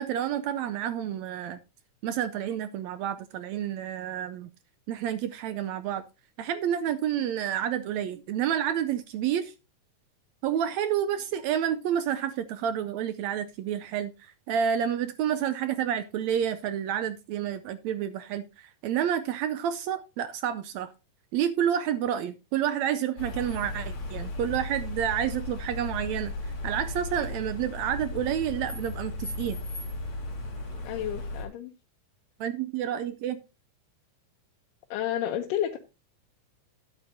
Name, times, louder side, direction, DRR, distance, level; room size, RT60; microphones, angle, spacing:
voice 1, 0.0-1.6 2.0-4.5 4.9-6.0 6.4-9.5 10.4-20.9 21.3-29.6 32.4-33.4, right 9 dB, 80° right, 1.6 m, -29 dB
sound 1, 23.2-31.5, left 2 dB, 50° left, 4.4 m, -36 dB
voice 2, 30.8-31.7 34.9-35.8, left 11 dB, 90° left, 2.5 m, -30 dB
12.5 x 9.4 x 2.7 m
omnidirectional pair, 3.7 m